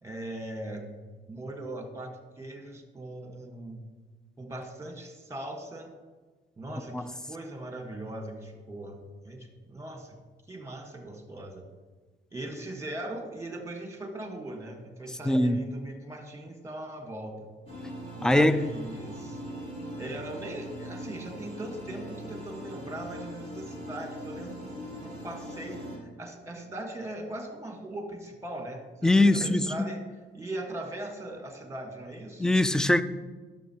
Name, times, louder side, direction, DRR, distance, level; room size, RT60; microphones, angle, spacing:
voice 1, 0.0-0.9 1.3-3.8 4.4-5.9 6.6-10.2 10.5-11.6 12.3-17.5 18.1-19.4 20.0-24.6 25.0-32.4, right 1 dB, 15° right, 1.4 m, -40 dB
voice 2, 15.3-15.6 18.2-18.7 29.0-29.9 32.4-33.0, left 1 dB, 5° left, 0.3 m, -22 dB
sound 1, 17.7-26.0, equal, 30° left, 2.3 m, -41 dB
11.5 x 6.8 x 2.9 m
cardioid pair, 90°, 20 cm